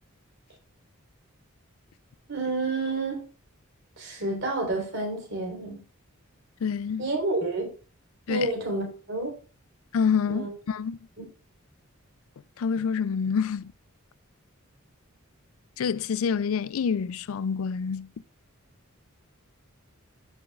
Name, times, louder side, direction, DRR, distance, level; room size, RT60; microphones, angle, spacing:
voice 1, 2.3-3.2 4.0-5.8 7.0-7.7 8.3-9.3 10.3-10.5, right 2 dB, 55° right, 3.9 m, -29 dB
voice 2, 6.6-7.1 8.3-8.5 9.9-11.0 12.6-13.7 15.8-18.1, left 6 dB, 70° left, 0.4 m, -27 dB
14.5 x 6.3 x 2.4 m
head